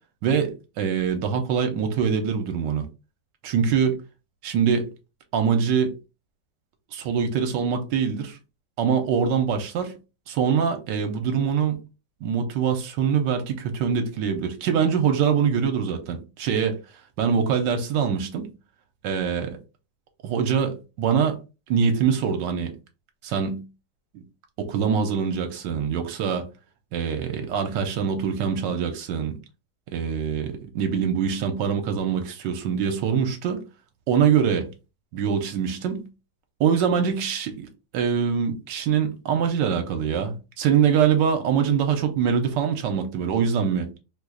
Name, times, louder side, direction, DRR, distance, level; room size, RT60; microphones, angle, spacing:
voice 1, 0.2-2.9 3.4-4.0 4.4-4.9 5.3-5.9 6.9-8.4 8.8-9.9 10.3-11.8 12.2-16.8 17.2-18.5 19.0-19.6 20.2-21.4 21.7-22.7 23.2-23.6 24.1-24.2 24.6-26.5 26.9-29.4 29.9-33.6 34.1-34.7 35.1-36.0 36.6-37.7 37.9-43.9, right 7 dB, 75° right, 1.3 m, -24 dB
3.0 x 2.3 x 3.6 m
omnidirectional pair, 2.0 m